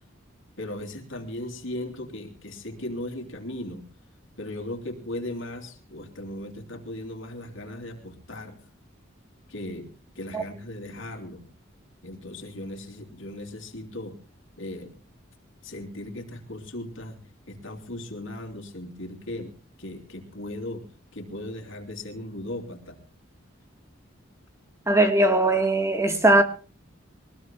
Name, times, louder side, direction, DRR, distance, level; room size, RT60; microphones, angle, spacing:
voice 1, 0.6-3.8 4.4-8.6 9.5-9.9 10.2-11.4 12.0-14.1 14.6-14.9 15.6-17.2 17.5-19.5 19.8-20.8 21.1-23.0, left 1 dB, 70° left, 3.0 m, -37 dB
voice 2, 24.9-26.4, right 2 dB, 15° right, 1.3 m, -19 dB
23.5 x 19.5 x 2.2 m
head